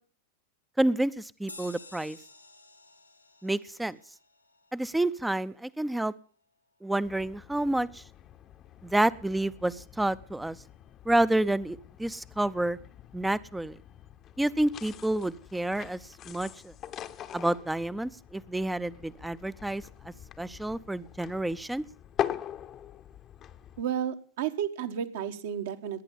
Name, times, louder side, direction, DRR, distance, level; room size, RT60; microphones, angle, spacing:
voice 1, 0.8-2.2 3.4-4.0 4.7-6.1 6.8-8.0 8.8-10.6 11.1-12.8 13.1-13.8 14.4-16.0 16.3-16.7 17.3-21.8, right 1 dB, 5° right, 17 dB, 0.7 m, -29 dB
sound 1, 1.5-6.4, left 2 dB, 85° left, 1.5 m, -52 dB
sound 2, 7.0-23.8, left 10 dB, 30° left, 0.9 m, -42 dB
voice 2, 23.8-26.0, right 9 dB, 55° right, 7 dB, 1.5 m, -32 dB
19.5 x 10.0 x 7.1 m, 0.42 s
figure-of-eight pair, 90°, 0 cm